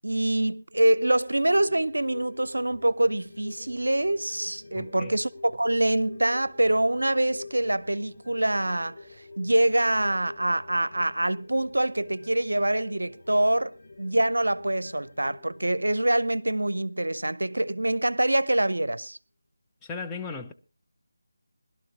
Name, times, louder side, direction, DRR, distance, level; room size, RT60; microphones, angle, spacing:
voice 1, 0.0-8.9 9.4-19.2, right 1 dB, 75° right, 0.6 m, -25 dB
sound 1, 0.8-17.6 17.9-18.0, left 3 dB, 45° left, 5.7 m, -48 dB
voice 2, 4.7-5.2 19.8-20.5, left 4 dB, 10° left, 0.6 m, -36 dB
21.0 x 12.0 x 2.8 m
figure-of-eight pair, 160°, 0 cm